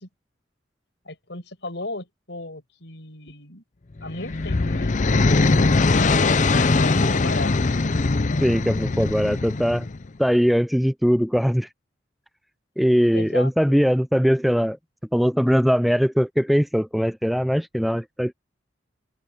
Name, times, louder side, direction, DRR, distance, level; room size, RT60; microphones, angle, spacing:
voice 1, 1.0-3.6 4.0-6.2 6.8-7.8 13.1-13.8, left 2 dB, 70° left, 7.1 m, -36 dB
sound 1, 4.0-10.1, left 3 dB, 40° left, 0.6 m, -21 dB
voice 2, 8.4-9.9 10.2-11.7 12.8-14.8 15.1-18.3, equal, ahead, 0.4 m, -20 dB
open air
head